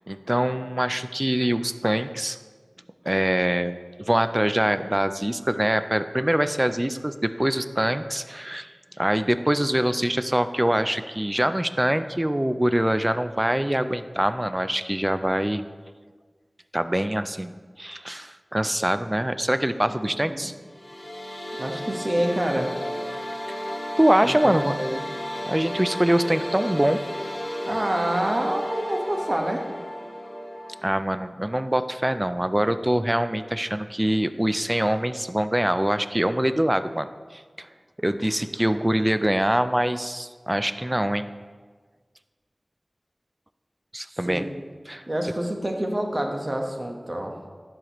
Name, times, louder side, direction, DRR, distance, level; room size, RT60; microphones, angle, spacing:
voice 1, 0.1-2.4 3.1-8.7 9.0-15.7 16.7-20.5 24.0-24.8 25.5-27.0 30.8-37.1 37.3-37.7 38.0-41.3 43.9-44.5 44.9-45.0, right 1 dB, 20° right, 11 dB, 0.4 m, -24 dB
voice 2, 19.9-20.5 21.6-22.7 24.2-25.1 27.6-29.6 44.1-44.5 45.1-47.3, right 1 dB, 45° right, 2 dB, 1.1 m, -27 dB
sound 1, 20.6-30.8, equal, 35° left, 1.5 m, -33 dB
10.5 x 6.5 x 3.0 m, 1.5 s
wide cardioid pair, 40°, 0 cm